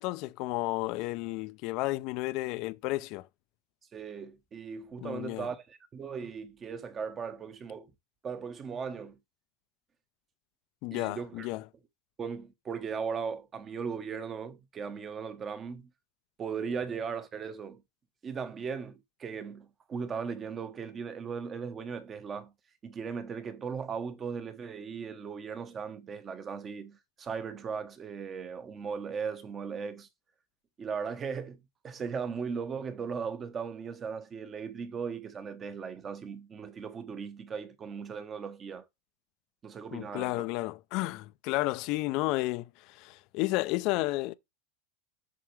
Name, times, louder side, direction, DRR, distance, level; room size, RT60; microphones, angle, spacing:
voice 1, 0.0-3.3 5.0-5.5 10.8-11.6 39.9-44.3, left 20 dB, 50° left, 0.5 m, -32 dB
voice 2, 3.9-7.9 8.2-9.2 10.9-11.5 12.2-15.9 16.4-17.8 18.2-22.5 22.8-30.1 30.8-38.8 39.6-40.4, right 6 dB, 25° right, 1.0 m, -38 dB
7.5 x 5.8 x 3.2 m
supercardioid pair, 145°, 0 cm